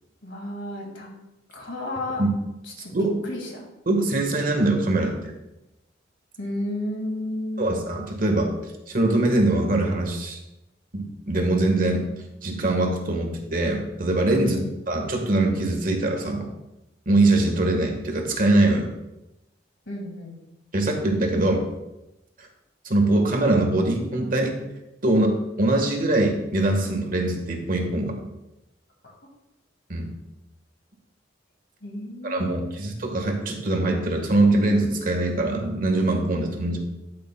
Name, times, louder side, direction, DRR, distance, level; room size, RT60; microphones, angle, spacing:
voice 1, 0.2-1.1 1.5-2.2 2.8-2.9 3.2-3.6 6.4-7.7 14.4-14.7 19.9-20.4 31.8-32.8, left 1 dB, 70° left, 0 dB, 2.1 m, -32 dB
voice 2, 2.9-3.2 3.9-5.1 7.6-8.5 8.9-10.4 10.9-12.0 12.4-14.6 14.9-16.5 17.1-18.9 20.7-21.6 22.8-24.6 25.0-28.2 29.9-30.1 32.2-36.8, right 2 dB, 50° right, 2 dB, 1.4 m, -22 dB
12.5 x 6.7 x 2.2 m, 0.95 s
head